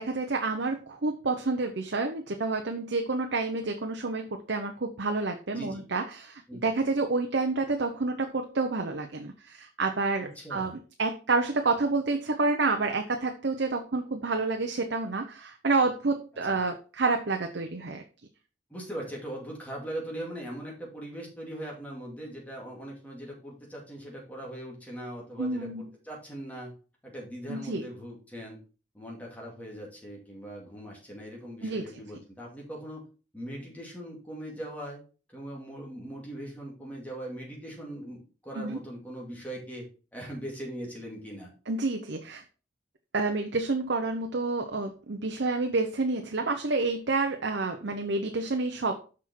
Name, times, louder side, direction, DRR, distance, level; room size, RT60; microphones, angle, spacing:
voice 1, 0.0-18.0 25.4-25.9 27.5-27.9 31.6-31.9 38.5-38.8 41.7-42.4 43.1-49.0, right 3 dB, 70° right, 4 dB, 0.8 m, -29 dB
voice 2, 5.5-5.9 6.5-6.7 10.2-10.8 16.4-16.6 18.7-26.7 27.0-28.6 28.9-33.0 33.3-35.0 35.3-39.8 40.1-41.5, right 1 dB, 10° left, -2 dB, 2.4 m, -40 dB
6.1 x 6.0 x 4.5 m, 0.35 s
head